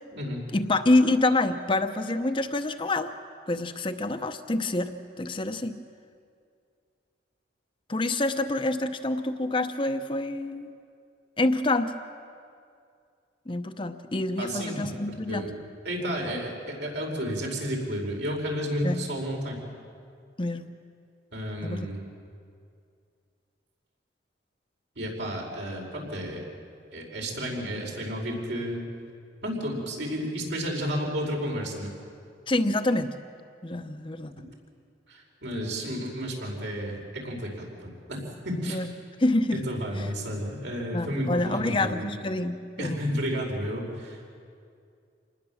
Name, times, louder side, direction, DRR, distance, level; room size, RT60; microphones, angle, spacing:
voice 1, 0.5-3.1 3.5-5.8 7.9-10.7 11.4-11.9 13.5-15.5 18.8-19.0 20.4-20.7 21.6-21.9 32.5-33.1 33.6-34.3 38.7-38.9 39.2-39.6 39.9-40.1 40.9-43.0, left 2 dB, 30° left, 8 dB, 0.8 m, -27 dB
voice 2, 14.4-15.5 15.8-19.6 21.3-22.0 24.9-26.4 26.9-28.8 29.4-31.9 35.1-38.8 39.5-42.0 42.8-44.3, equal, 80° right, -1 dB, 5.2 m, -32 dB
27.0 x 19.5 x 7.3 m, 2.3 s
head